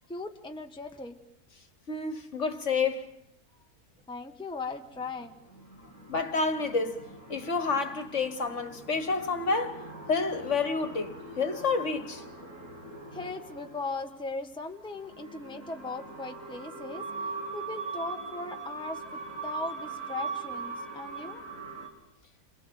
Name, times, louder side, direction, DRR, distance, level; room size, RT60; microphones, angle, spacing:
voice 1, 0.1-1.2 4.1-5.3 13.1-21.4, left 3 dB, 5° left, 1.2 m, -38 dB
voice 2, 1.9-3.1 6.1-7.0 7.3-12.3, left 4 dB, 50° left, 1.9 m, -29 dB
sound 1, 4.9-14.1 14.8-21.9, right 4 dB, 55° right, 4.7 m, -41 dB
29.0 x 23.0 x 7.7 m
omnidirectional pair, 1.6 m